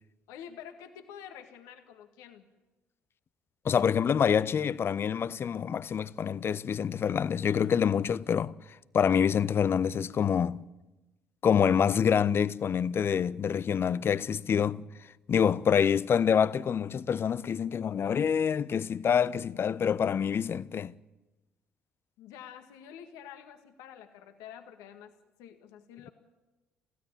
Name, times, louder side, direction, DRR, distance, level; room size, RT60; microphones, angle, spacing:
voice 1, 0.3-2.5 22.2-26.1, left 9 dB, 65° left, 1.8 m, -48 dB
voice 2, 3.6-8.5 8.9-10.6 11.4-14.8 15.3-20.9, left 7 dB, 40° left, 0.7 m, -26 dB
24.5 x 16.0 x 8.8 m
figure-of-eight pair, 50°, 6 cm